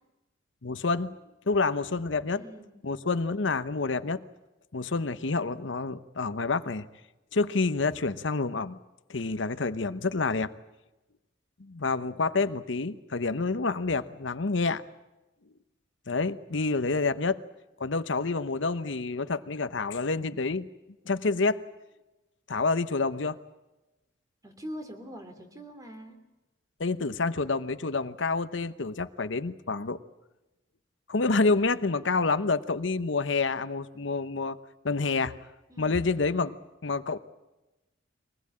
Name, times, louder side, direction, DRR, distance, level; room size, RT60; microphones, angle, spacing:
voice 1, 0.6-1.1 1.5-2.4 2.8-4.2 4.7-6.9 7.3-8.8 9.1-10.5 11.6-14.8 16.1-17.4 17.8-20.7 21.1-21.6 22.5-23.4 26.8-30.0 31.1-34.6 34.8-35.4 35.8-36.6 36.8-37.2, left 3 dB, 75° left, 12 dB, 0.9 m, -28 dB
voice 2, 2.3-2.8 24.4-26.2 35.7-36.0, equal, 20° right, 6 dB, 3.1 m, -43 dB
23.5 x 20.0 x 8.6 m, 1.0 s
head